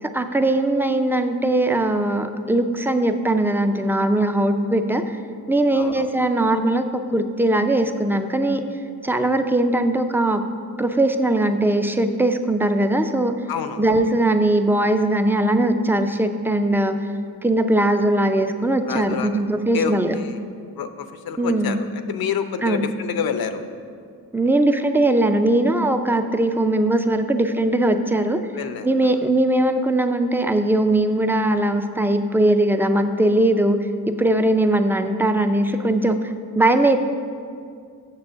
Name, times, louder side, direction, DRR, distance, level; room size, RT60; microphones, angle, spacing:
voice 1, 0.0-5.2 5.5-8.6 9.0-10.5 10.8-13.3 13.8-17.0 17.4-20.2 21.4-21.8 22.6-22.9 24.3-28.4 28.8-37.0, right 1 dB, 5° right, 8 dB, 0.4 m, -20 dB
voice 2, 5.7-6.1 13.5-13.8 18.9-19.4 19.7-20.4 20.8-23.6 28.5-28.9, left 7 dB, 65° left, 9 dB, 0.7 m, -28 dB
7.0 x 6.9 x 6.7 m, 2.2 s
cardioid pair, 105°, 38 cm